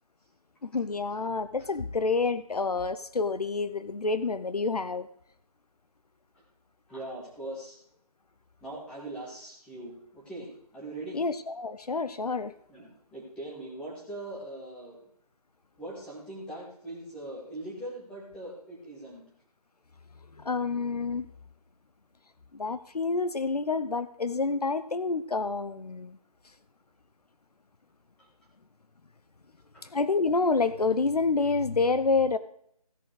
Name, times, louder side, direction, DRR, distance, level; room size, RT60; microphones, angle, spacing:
voice 1, 0.6-5.1 11.1-12.5 20.4-21.3 22.5-26.2 29.8-32.4, left 4 dB, 75° left, 13 dB, 0.8 m, -28 dB
voice 2, 6.9-7.8 8.6-11.2 12.7-15.0 15.8-19.2 28.2-28.3 29.7-29.9, right 1 dB, 5° left, -6 dB, 2.2 m, -41 dB
16.0 x 7.2 x 5.0 m, 0.68 s
figure-of-eight pair, 165°, 20 cm